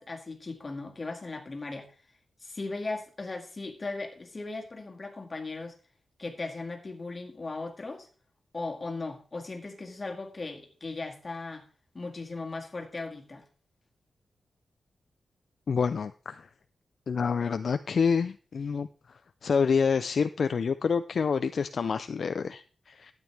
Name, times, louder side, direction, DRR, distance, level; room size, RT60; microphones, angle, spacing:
voice 1, 0.0-1.9 2.4-5.8 6.2-8.1 8.5-11.7 11.9-13.4, left 3 dB, 30° left, 2.0 m, -37 dB
voice 2, 15.7-16.5 17.1-23.1, left 5 dB, 55° left, 0.4 m, -28 dB
12.0 x 9.0 x 3.4 m
wide cardioid pair, 135°, 0 cm